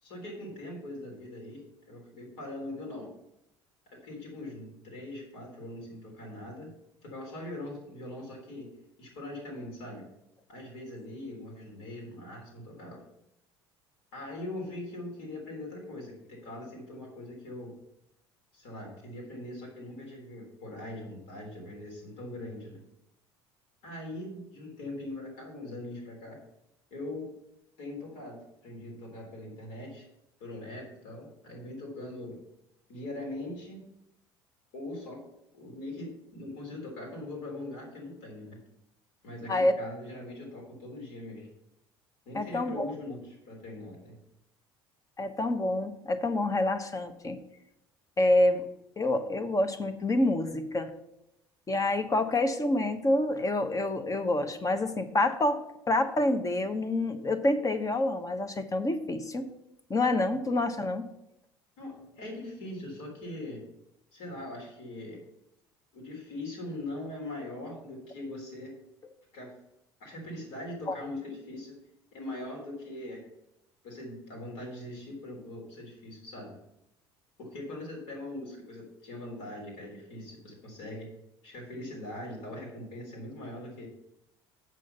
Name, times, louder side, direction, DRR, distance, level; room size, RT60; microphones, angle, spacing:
voice 1, 0.0-3.1 3.9-6.7 7.0-8.7 9.0-10.1 10.5-13.0 14.1-17.7 18.5-22.8 23.8-26.4 26.9-27.3 27.8-30.1 30.4-32.4 32.9-33.9 34.7-35.2 35.5-38.6 39.2-41.5 42.3-44.2 61.8-63.6 64.1-65.2 65.9-68.7 69.3-69.5 70.0-71.8 72.1-73.2 73.8-76.6 77.4-81.1 81.4-83.9, left 1 dB, 75° left, -1 dB, 3.6 m, -41 dB
voice 2, 42.3-42.9 45.2-47.4 48.2-48.6 49.0-50.9 51.7-55.6 55.9-59.5 59.9-61.1 70.9-71.0, left 2 dB, 25° left, 9 dB, 1.1 m, -27 dB
7.6 x 6.3 x 5.5 m, 0.82 s
hypercardioid pair, 70°, 13 cm